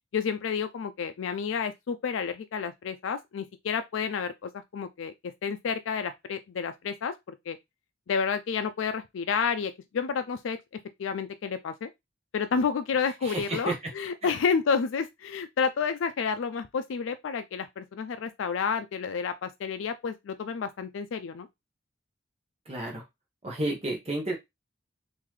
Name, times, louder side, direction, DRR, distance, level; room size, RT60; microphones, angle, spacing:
voice 1, 0.1-5.1 5.4-7.6 8.1-10.6 11.0-11.9 12.3-21.5, left 6 dB, 85° left, 0.4 m, -30 dB
voice 2, 13.2-13.7 14.2-14.3 22.7-23.0 23.4-24.3, right 2 dB, 30° right, 1.0 m, -31 dB
3.8 x 2.6 x 3.1 m
head